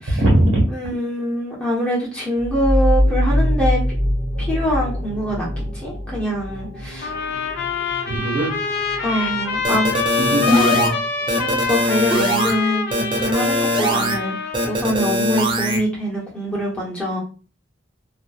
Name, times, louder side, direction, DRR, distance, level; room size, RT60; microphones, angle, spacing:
voice 1, 0.0-0.6 8.1-9.3 10.2-10.9, right 1 dB, 80° right, -2 dB, 1.3 m, -21 dB
voice 2, 0.7-3.8 4.4-5.5 5.7-7.1 9.0-9.9 10.4-11.0 11.3-17.2, equal, 5° left, -5 dB, 0.9 m, -24 dB
sound 1, 2.3-11.7, equal, 60° right, 1.0 m, -24 dB
sound 2, 7.0-14.8, left 5 dB, 50° left, 0.4 m, -25 dB
sound 3, 9.6-10.9 11.3-12.5 12.9-14.1 14.5-15.8, equal, 25° right, 0.4 m, -21 dB
2.4 x 2.2 x 2.3 m, 0.36 s
head